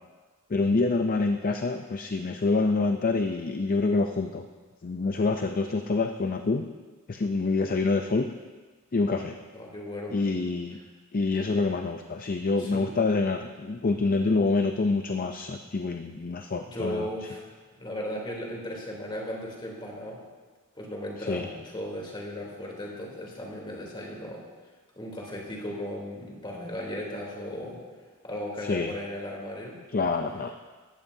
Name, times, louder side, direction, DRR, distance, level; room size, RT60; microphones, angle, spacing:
voice 1, 0.5-4.4 4.8-6.7 7.1-8.3 8.9-9.3 10.1-10.8 11.1-17.1 21.2-21.5 28.6-28.9 29.9-30.5, left 3 dB, 45° left, 5 dB, 0.5 m, -26 dB
voice 2, 9.5-10.2 12.6-12.9 16.6-17.5 17.8-20.2 20.7-24.4 24.9-27.8 28.2-29.8, left 1 dB, 25° left, -2 dB, 3.3 m, -36 dB
18.5 x 14.0 x 2.8 m, 1.4 s
head